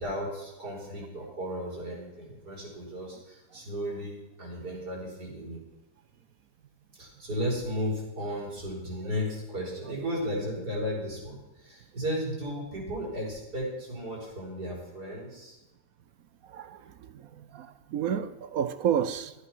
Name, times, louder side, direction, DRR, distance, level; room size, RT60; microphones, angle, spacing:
voice 1, 0.0-5.6 7.0-15.6, equal, 85° right, 5.3 m, -34 dB
voice 2, 16.5-19.3, right 9 dB, 65° right, 1.1 m, -31 dB
14.5 x 8.5 x 6.1 m
omnidirectional pair, 1.7 m